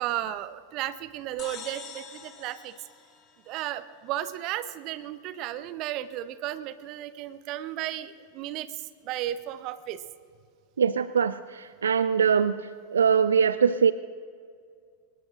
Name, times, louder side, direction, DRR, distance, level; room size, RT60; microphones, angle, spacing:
voice 1, 0.0-2.7 3.5-10.0, right 13 dB, 40° right, 14 dB, 0.7 m, -34 dB
sound 1, 1.4-4.0, left 6 dB, 30° left, 1.9 m, -45 dB
voice 2, 10.8-12.6 12.9-13.9, right 7 dB, 70° right, 15 dB, 0.3 m, -22 dB
23.5 x 20.0 x 2.5 m, 2.1 s
figure-of-eight pair, 90°, 0 cm